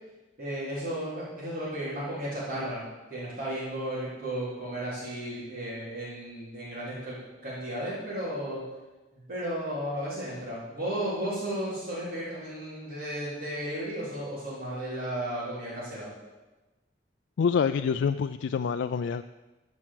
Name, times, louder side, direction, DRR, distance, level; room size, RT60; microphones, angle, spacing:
voice 1, 0.4-2.8 3.1-8.6 9.3-16.1, right 1 dB, 50° right, -11 dB, 3.8 m, -34 dB
voice 2, 17.4-19.2, left 6 dB, 80° left, 9 dB, 0.3 m, -26 dB
12.5 x 6.0 x 7.6 m, 1.2 s
head